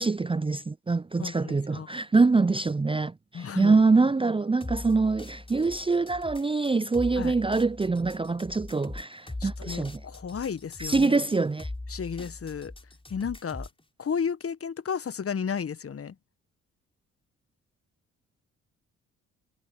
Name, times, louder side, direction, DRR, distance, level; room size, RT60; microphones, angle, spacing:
voice 1, 0.0-10.0 10.8-11.7, right 3 dB, 15° right, 0.7 m, -24 dB
voice 2, 1.2-2.0 3.3-3.8 7.2-7.3 9.4-11.2 11.9-12.7 13.1-13.7 14.0-16.2, left 6 dB, 40° left, 1.7 m, -33 dB
sound 1, 4.6-13.8, left 2 dB, 15° left, 5.2 m, -41 dB
hypercardioid pair, 45°, 37 cm